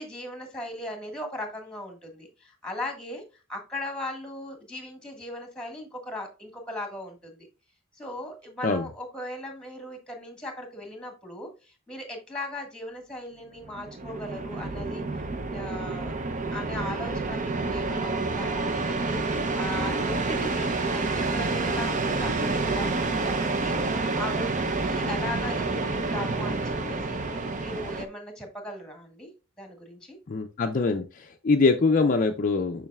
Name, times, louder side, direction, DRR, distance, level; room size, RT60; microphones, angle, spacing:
voice 1, 0.0-3.2 3.5-7.3 7.9-15.0 15.4-16.1 16.5-23.7 24.1-29.3 29.6-30.2, left 1 dB, 5° left, 4 dB, 1.6 m, -38 dB
sound 1, 13.6-28.1, right 3 dB, 35° right, 0.6 m, -28 dB
voice 2, 30.3-32.9, left 3 dB, 40° left, 5 dB, 0.5 m, -24 dB
7.1 x 5.7 x 2.3 m, 0.31 s
head